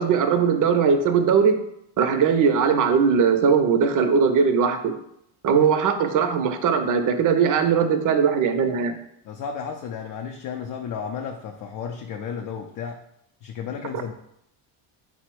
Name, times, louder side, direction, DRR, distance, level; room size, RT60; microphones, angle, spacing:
voice 1, 0.0-1.6 2.0-4.9 5.4-8.9, right 6 dB, 45° right, 7 dB, 0.6 m, -20 dB
voice 2, 9.2-13.0 13.4-14.1, left 7 dB, 45° left, 3 dB, 0.5 m, -33 dB
4.0 x 2.1 x 4.5 m, 0.76 s
supercardioid pair, 95°, 46 cm